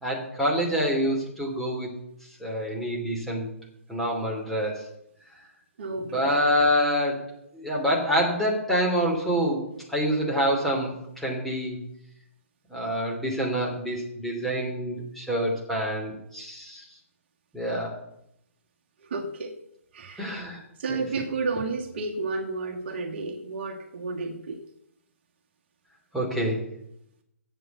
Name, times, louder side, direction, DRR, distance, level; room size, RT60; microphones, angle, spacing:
voice 1, 0.0-1.9 2.4-3.5 3.9-4.9 6.0-7.2 7.5-11.8 12.7-16.8 17.5-18.0 20.2-20.6 20.9-21.0 26.1-26.6, equal, ahead, -3 dB, 3.0 m, -26 dB
voice 2, 5.8-6.4 19.1-19.5 19.9-20.4 20.8-24.6, right 3 dB, 50° right, 2 dB, 1.7 m, -31 dB
9.6 x 7.8 x 8.2 m, 0.78 s
figure-of-eight pair, 130°, 8 cm